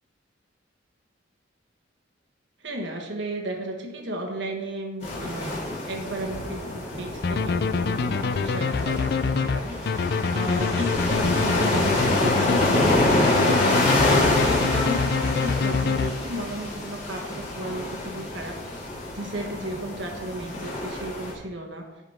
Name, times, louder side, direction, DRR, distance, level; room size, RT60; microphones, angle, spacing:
voice 1, 2.6-18.6 19.1-21.9, right 1 dB, 75° right, 2 dB, 1.4 m, -34 dB
sound 1, 5.0-21.3, left 1 dB, 35° left, 2.3 m, -26 dB
sound 2, 7.2-16.5, left 4 dB, 60° left, 0.4 m, -25 dB
11.0 x 5.0 x 4.4 m, 1.1 s
head